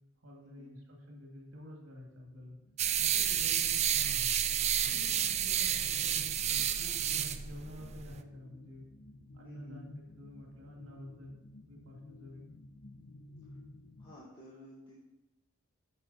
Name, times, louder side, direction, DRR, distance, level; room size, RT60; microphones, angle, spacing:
voice 1, 0.2-2.6 3.0-4.3 4.8-8.8 9.3-11.4 11.7-12.5, left 1 dB, 80° right, -1 dB, 2.1 m, -50 dB
sound 1, 2.0-14.2, left 1 dB, 75° left, 0.8 m, -53 dB
sound 2, 2.8-8.2, right 10 dB, 35° right, 0.4 m, -30 dB
voice 2, 9.4-9.8 14.0-15.0, equal, 25° left, -7 dB, 1.9 m, -54 dB
11.0 x 6.8 x 4.1 m, 0.96 s
head